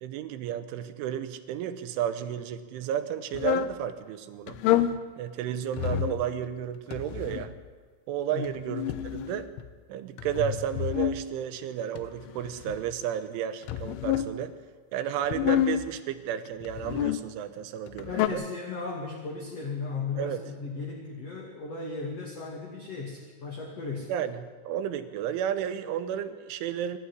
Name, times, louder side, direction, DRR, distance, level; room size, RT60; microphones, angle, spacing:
voice 1, 0.0-4.6 5.2-7.5 8.1-9.5 9.9-14.5 14.9-18.4 20.2-20.4 24.1-27.0, right 10 dB, 80° right, 11 dB, 3.4 m, -32 dB
sound 1, 3.3-3.8 4.5-5.0 5.7-6.2 6.9-7.6 8.4-9.7 10.2-11.2 12.0-12.9 13.6-14.3 15.2-15.9 16.6-17.2 17.9-18.3, left 12 dB, 80° left, 3.3 m, -28 dB
voice 2, 18.1-24.1, left 4 dB, 40° left, 0 dB, 2.7 m, -36 dB
25.5 x 13.5 x 9.8 m, 1.5 s
omnidirectional pair, 5.7 m